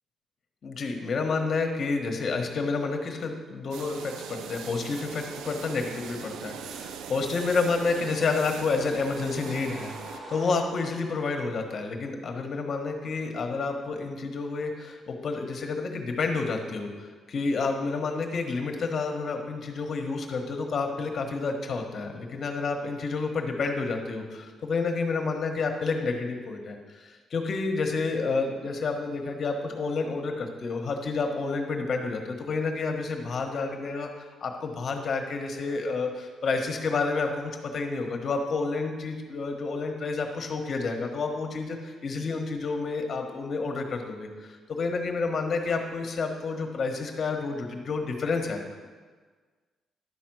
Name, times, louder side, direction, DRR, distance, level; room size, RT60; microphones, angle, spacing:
voice 1, 0.6-34.1 34.4-48.9, left 4 dB, 50° left, 4 dB, 1.3 m, -30 dB
sound 1, 3.7-10.2, right 7 dB, 85° right, 0.5 m, -40 dB
sound 2, 8.0-11.1, right 1 dB, 50° right, 1.7 m, -45 dB
11.0 x 4.3 x 6.2 m, 1.5 s
cardioid pair, 90°, 0 cm